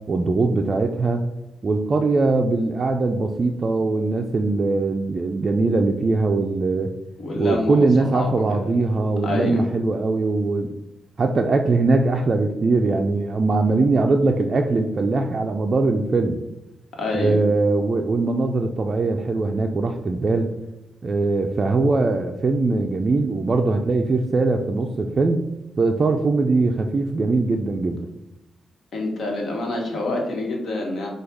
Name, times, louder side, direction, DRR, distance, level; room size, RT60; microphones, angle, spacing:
voice 1, 0.1-1.2 1.6-6.9 7.4-10.7 11.2-16.4 17.1-20.5 21.0-25.4 25.8-28.1, right 3 dB, 40° right, 3 dB, 0.3 m, -21 dB
voice 2, 7.2-7.9 8.1-8.6 9.2-9.6 17.0-17.4 28.9-31.1, left 2 dB, 65° left, 0 dB, 1.2 m, -26 dB
4.9 x 2.3 x 4.6 m, 0.93 s
cardioid pair, 100°, 0 cm